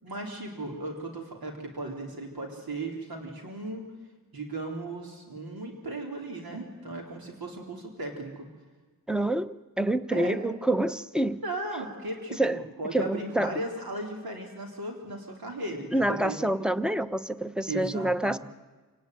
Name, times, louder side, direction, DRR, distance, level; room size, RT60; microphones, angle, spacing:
voice 1, 0.0-3.9 4.3-8.5 10.1-10.4 11.4-16.4 17.7-18.4, right 2 dB, 85° right, 1 dB, 3.8 m, -36 dB
voice 2, 9.1-11.4 12.4-12.6 12.9-13.6 15.9-18.4, right 1 dB, ahead, 12 dB, 0.8 m, -27 dB
27.5 x 18.5 x 9.4 m, 1.3 s
wide cardioid pair, 95°, 35 cm